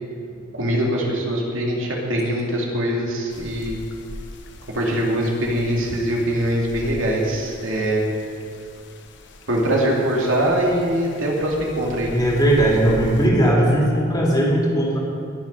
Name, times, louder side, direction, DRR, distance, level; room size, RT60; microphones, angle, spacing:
voice 1, 0.5-3.8 4.7-8.0 9.5-12.1, right 1 dB, 80° right, -2 dB, 2.6 m, -22 dB
sound 1, 3.3-13.3, left 1 dB, 60° left, 1.1 m, -40 dB
voice 2, 12.1-15.0, right 1 dB, 20° left, -3 dB, 2.7 m, -18 dB
20.5 x 7.3 x 5.5 m, 2.4 s
head